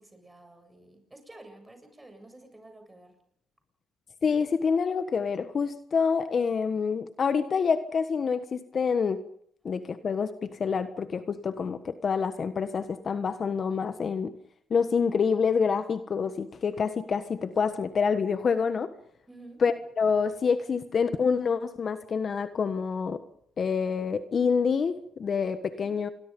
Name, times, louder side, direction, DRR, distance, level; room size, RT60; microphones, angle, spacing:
voice 1, 0.0-3.2 19.3-19.6 25.7-26.0, right 2 dB, 15° right, 6 dB, 7.8 m, -50 dB
voice 2, 4.2-9.2 9.6-14.3 14.7-18.9 19.6-23.2 23.6-26.1, left 5 dB, 50° left, 10 dB, 1.4 m, -27 dB
28.0 x 23.0 x 5.4 m, 0.67 s
cardioid pair, 75°, 0 cm